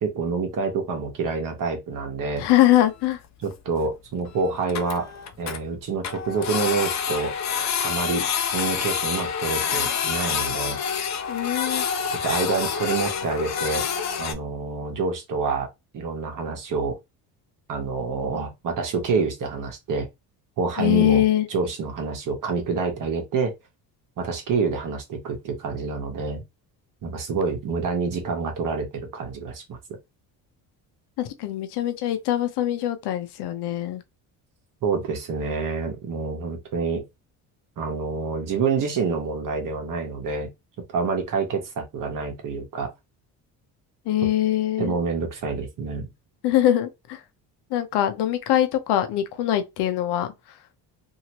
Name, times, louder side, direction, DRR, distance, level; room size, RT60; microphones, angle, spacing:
voice 1, 0.0-2.4 3.4-5.1 5.4-7.3 7.8-8.3 8.5-10.8 12.2-13.8 14.2-15.7 15.9-17.0 17.7-20.1 20.6-21.2 21.5-23.5 24.2-26.4 27.0-29.8 34.8-37.0 37.8-40.5 40.9-42.9 44.8-46.1, right 4 dB, 50° right, 1.1 m, -27 dB
voice 2, 2.4-3.2 11.3-11.8 20.8-21.5 31.2-34.0 44.1-44.9 46.4-47.2 47.7-50.3, left 13 dB, 75° left, 0.8 m, -22 dB
Printer, 2.8-2.9 3.0-3.1 3.5-3.6 3.8-3.9 4.3-4.4 4.6-5.6 6.0-14.3, left 7 dB, 45° left, 0.6 m, -27 dB
2.8 x 2.7 x 3.0 m
cardioid pair, 105°, 40 cm